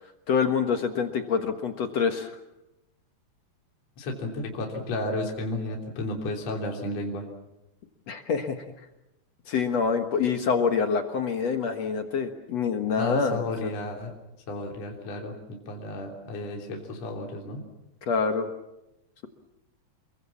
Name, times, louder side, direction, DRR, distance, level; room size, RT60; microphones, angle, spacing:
voice 1, 0.3-2.3 8.1-8.6 9.5-13.7 18.1-18.5, left 5 dB, 60° left, 6 dB, 1.8 m, -26 dB
voice 2, 4.0-7.2 13.0-14.1 14.5-17.6, left 2 dB, 40° left, 0 dB, 4.2 m, -32 dB
28.0 x 23.0 x 7.3 m, 0.91 s
omnidirectional pair, 4.8 m